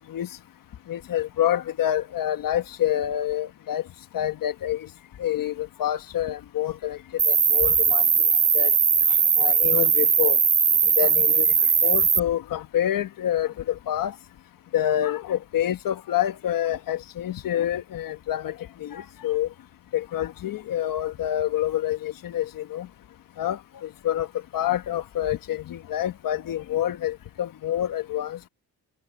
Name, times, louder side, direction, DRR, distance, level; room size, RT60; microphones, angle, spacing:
voice 1, 0.9-3.8 4.1-4.8 5.2-7.0 7.3-8.0 8.5-8.7 9.4-10.4 11.0-11.5 11.8-14.1 14.7-18.5 18.8-19.5 19.9-22.9 23.4-23.6 24.0-24.3 24.5-28.4, left 11 dB, 70° left, 1.3 m, -27 dB
Cricket, 7.2-12.2, right 6 dB, 45° right, 3.1 m, -19 dB
cardioid pair, 80°, 35 cm